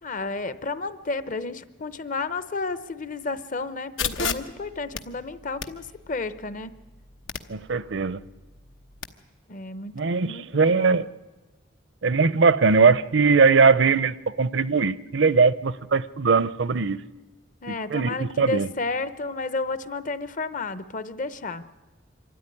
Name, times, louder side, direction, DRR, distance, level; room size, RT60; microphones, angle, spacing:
voice 1, 0.0-6.8 9.5-10.0 10.2-11.0 17.6-21.6, left 3 dB, 40° left, 0.8 m, -32 dB
sound 1, 4.0-9.1, left 6 dB, 80° left, 1.1 m, -35 dB
voice 2, 7.5-8.2 10.0-11.0 12.0-17.0 17.7-18.7, right 4 dB, 65° right, 0.6 m, -20 dB
25.5 x 13.5 x 9.8 m
head